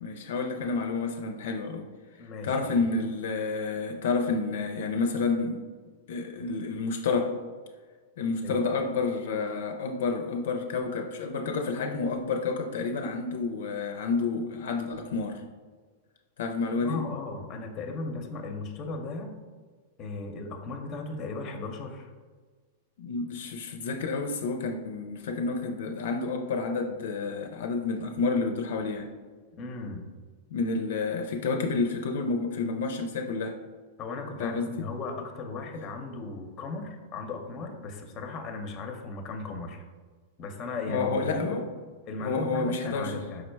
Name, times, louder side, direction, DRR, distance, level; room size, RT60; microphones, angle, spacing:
voice 1, 0.0-1.9 2.4-5.6 6.1-7.4 8.2-15.4 16.4-17.0 23.0-29.1 30.5-33.6 34.4-34.7 40.9-41.6 42.2-43.1, left 4 dB, 75° left, 5 dB, 0.4 m, -29 dB
voice 2, 2.2-2.9 8.4-8.6 16.8-19.3 20.0-22.1 29.6-30.1 34.0-39.8 40.4-41.6 42.0-43.4, left 3 dB, 30° left, 4 dB, 0.6 m, -36 dB
4.8 x 2.1 x 4.5 m, 1.5 s
hypercardioid pair, 130°, 0 cm